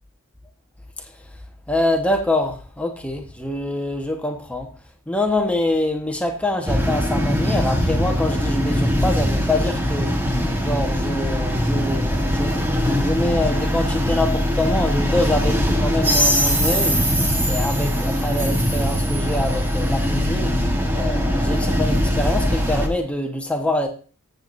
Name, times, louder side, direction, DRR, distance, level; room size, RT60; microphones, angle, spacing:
voice 1, 1.7-4.7 5.1-10.1 10.6-17.0 17.5-20.5 20.9-23.9, left 1 dB, 5° left, 1.2 m, -25 dB
sound 1, 6.7-22.9, equal, 10° right, 1.3 m, -21 dB
14.0 x 8.0 x 2.6 m
head